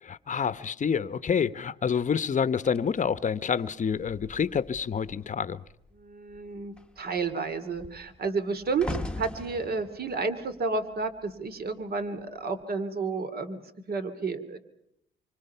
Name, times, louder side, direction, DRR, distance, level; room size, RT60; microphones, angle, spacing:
voice 1, 0.0-5.6, left 7 dB, 40° left, 1.0 m, -28 dB
sound 1, 2.6-5.3 5.6-6.0 6.3-11.6 12.4-12.6, left 1 dB, 5° left, 1.3 m, -41 dB
voice 2, 5.9-8.9 9.2-14.6, right 4 dB, 50° right, 2.7 m, -31 dB
27.0 x 25.0 x 5.7 m
cardioid pair, 90°, 20 cm